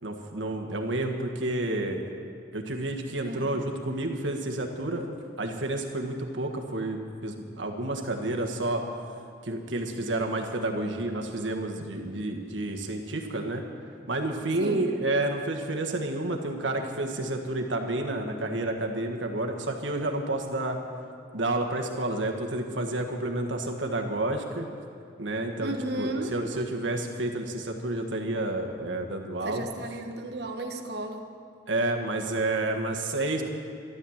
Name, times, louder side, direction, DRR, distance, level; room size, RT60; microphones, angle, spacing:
voice 1, 0.0-2.1 2.5-5.1 5.4-8.8 9.4-13.6 14.1-20.8 21.3-24.7 25.2-25.7 26.0-29.7 31.7-33.4, right 2 dB, 80° right, 3 dB, 1.6 m, -30 dB
voice 2, 25.6-26.4 29.4-31.3, right 1 dB, 60° right, 4 dB, 1.3 m, -34 dB
12.5 x 12.0 x 7.3 m, 2.5 s
head